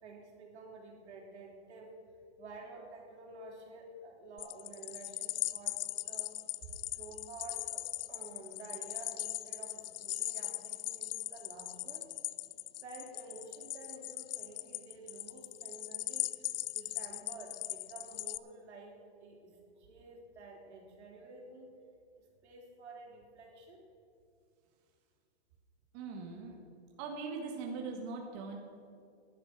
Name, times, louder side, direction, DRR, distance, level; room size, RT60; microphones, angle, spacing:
voice 1, 0.0-2.0 2.4-5.8 6.1-6.4 6.9-12.1 12.8-21.7 22.2-23.8, right 3 dB, 85° right, 0 dB, 3.5 m, -51 dB
sound 1, 4.4-18.4, left 14 dB, 55° left, 0.5 m, -39 dB
voice 2, 25.9-26.6 27.0-28.6, right 4 dB, 35° right, 1 dB, 1.6 m, -41 dB
12.0 x 11.0 x 6.0 m, 2.4 s
hypercardioid pair, 160°, 33 cm